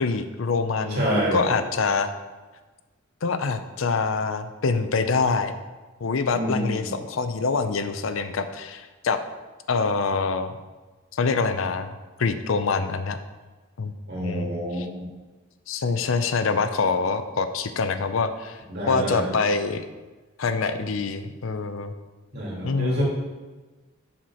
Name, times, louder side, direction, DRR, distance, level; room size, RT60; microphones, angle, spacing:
voice 1, 0.0-2.1 3.2-5.5 6.0-9.2 9.7-10.5 11.1-13.2 13.8-13.9 14.2-14.9 15.7-18.6 18.9-19.9 20.4-21.9 22.6-23.0, left 4 dB, 70° left, 10 dB, 0.6 m, -25 dB
voice 2, 0.9-1.5 6.3-6.9 14.1-15.1 18.7-19.3 22.3-23.0, equal, 55° right, -5 dB, 2.8 m, -27 dB
7.4 x 4.3 x 6.2 m, 1.3 s
head